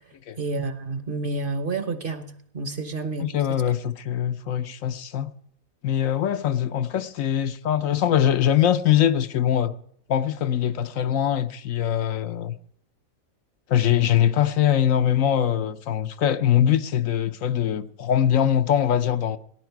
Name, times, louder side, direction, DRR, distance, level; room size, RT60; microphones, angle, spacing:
voice 1, 0.4-3.6, right 3 dB, 45° right, 1.1 m, -30 dB
voice 2, 3.2-5.3 5.8-9.7 10.1-12.6 13.7-19.4, left 10 dB, 75° left, 1.1 m, -22 dB
18.0 x 11.0 x 4.6 m
omnidirectional pair, 1.4 m